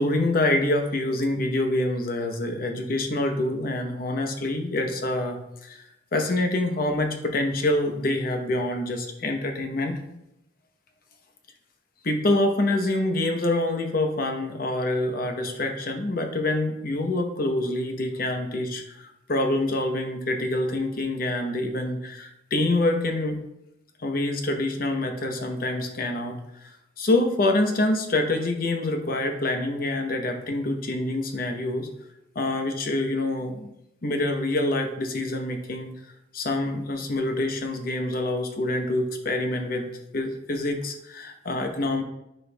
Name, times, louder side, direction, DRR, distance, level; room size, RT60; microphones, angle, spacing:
voice 1, 0.0-5.8 6.1-10.0 12.0-23.4 24.0-26.7 27.0-31.9 32.3-33.7 34.0-35.9 36.3-42.0, left 2 dB, 55° left, 4 dB, 0.8 m, -26 dB
9.8 x 4.5 x 2.2 m, 0.84 s
head